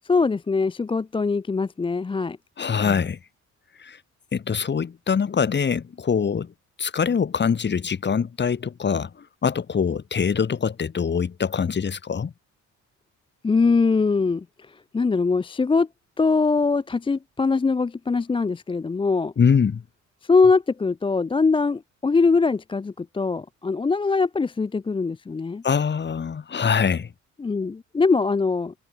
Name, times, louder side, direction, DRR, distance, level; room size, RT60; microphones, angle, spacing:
voice 1, 0.1-2.4 13.4-14.4 14.9-15.9 16.2-19.3 20.2-25.6 27.4-28.7, left 4 dB, 15° left, 0.5 m, -22 dB
voice 2, 2.6-3.2 3.8-4.0 4.3-6.5 6.8-9.1 9.4-12.3 19.4-19.8 25.6-27.1, left 6 dB, 35° left, 1.6 m, -23 dB
cardioid pair, 90°, 30 cm